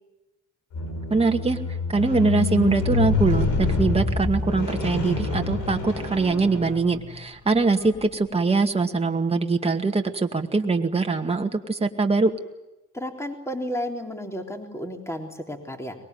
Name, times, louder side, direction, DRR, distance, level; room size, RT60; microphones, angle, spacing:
Squeak, 0.7-7.1 7.8-8.0, left 4 dB, 80° left, 6.1 m, -26 dB
voice 1, 1.1-1.6 1.9-12.3, right 3 dB, 20° right, 4 dB, 2.2 m, -23 dB
voice 2, 12.9-16.0, equal, 10° left, 3 dB, 3.7 m, -32 dB
23.5 x 21.0 x 9.6 m, 0.99 s
cardioid pair, 90°, 30 cm